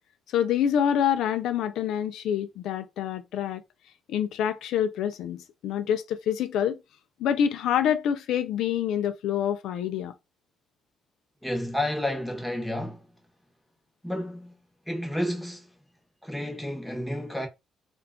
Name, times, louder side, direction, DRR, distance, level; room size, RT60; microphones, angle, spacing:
voice 1, 0.3-3.6 4.1-6.8 7.2-10.1, left 9 dB, 85° left, 0.3 m, -26 dB
voice 2, 11.4-13.1 14.0-14.6 14.9-15.7 16.2-17.5, left 1 dB, ahead, 0.9 m, -31 dB
2.3 x 2.2 x 3.5 m
cardioid pair, 90°, 0 cm